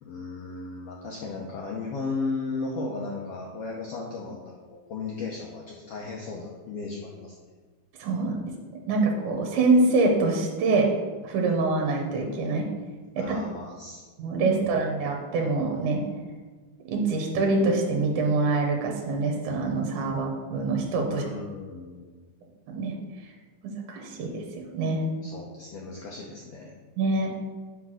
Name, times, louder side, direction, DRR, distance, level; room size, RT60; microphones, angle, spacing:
voice 1, 0.0-7.3 13.2-14.0 14.6-14.8 21.1-22.2 25.2-26.7, left 3 dB, 75° left, -1 dB, 1.4 m, -35 dB
voice 2, 8.0-8.5 8.9-10.9 11.2-12.7 13.2-13.4 14.2-16.0 16.8-21.2 22.7-23.0 23.6-24.4 24.7-25.0 27.0-27.3, right 3 dB, 75° right, 2 dB, 2.4 m, -25 dB
5.9 x 5.3 x 6.1 m, 1.4 s
omnidirectional pair, 3.6 m